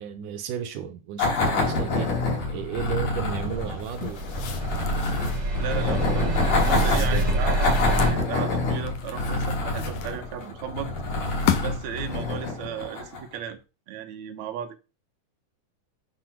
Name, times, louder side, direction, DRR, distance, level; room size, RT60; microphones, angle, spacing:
voice 1, 0.0-2.1 2.5-4.2 5.9-7.7, right 8 dB, 80° right, 2.6 m, -34 dB
sound 1, 1.2-13.4, left 3 dB, 80° left, 5.2 m, -27 dB
sound 2, 3.4-8.1, right 1 dB, 40° right, 4.2 m, -26 dB
sound 3, 3.8-5.5 6.4-8.2 8.9-10.5 11.1-11.9, left 10 dB, 65° left, 2.1 m, -33 dB
voice 2, 5.5-10.9 11.2-13.6 13.9-14.8, right 8 dB, 65° right, 2.4 m, -35 dB
10.0 x 4.4 x 6.1 m
omnidirectional pair, 3.7 m